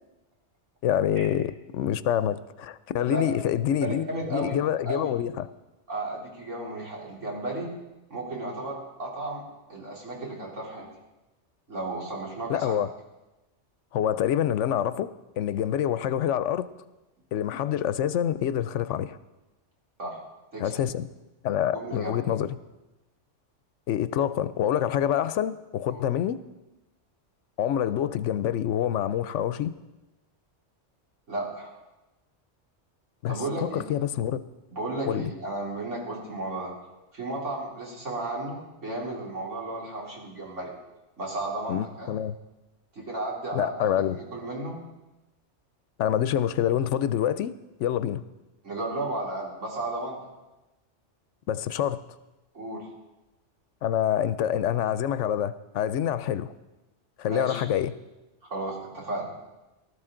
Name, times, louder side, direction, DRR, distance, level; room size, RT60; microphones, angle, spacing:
voice 1, 0.8-5.5 12.5-12.9 13.9-16.7 17.3-19.2 20.6-21.1 21.4-22.6 23.9-26.4 27.6-29.7 33.2-33.4 33.7-34.4 35.1-35.3 41.7-42.4 43.5-44.2 46.0-47.5 47.8-48.2 51.5-52.0 53.8-56.5 57.2-57.9, left 10 dB, 80° left, 14 dB, 0.9 m, -26 dB
voice 2, 3.1-3.5 3.8-4.6 4.9-5.1 5.9-7.7 8.1-9.4 9.7-10.9 11.7-12.7 20.0-20.2 20.5-20.7 21.7-22.2 25.9-26.0 31.3-31.8 33.3-33.9 34.7-36.7 37.1-40.7 41.2-42.1 42.9-44.8 48.6-50.2 52.5-52.9 57.2-57.6 58.5-59.3, right 2 dB, 80° right, -4 dB, 3.8 m, -34 dB
18.5 x 12.5 x 3.8 m, 1.1 s
omnidirectional pair, 1.2 m